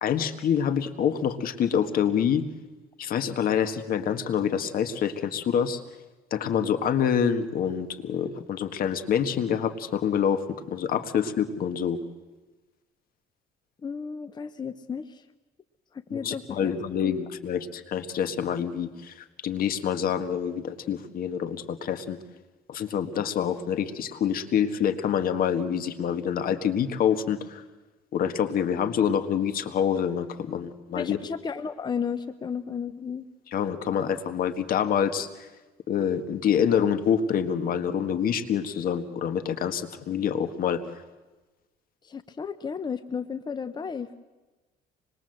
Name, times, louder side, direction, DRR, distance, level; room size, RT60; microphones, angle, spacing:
voice 1, 0.0-2.4 3.0-5.8 6.3-12.0 16.1-22.2 22.7-27.6 28.1-31.2 33.5-35.5 35.9-40.8, left 8 dB, 60° left, 9 dB, 1.7 m, -26 dB
voice 2, 13.8-15.2 15.9-16.7 17.0-17.1 30.9-33.2 42.0-44.1, left 6 dB, 25° left, 10 dB, 0.9 m, -33 dB
25.5 x 21.0 x 7.9 m, 1.2 s
cardioid pair, 110°, 17 cm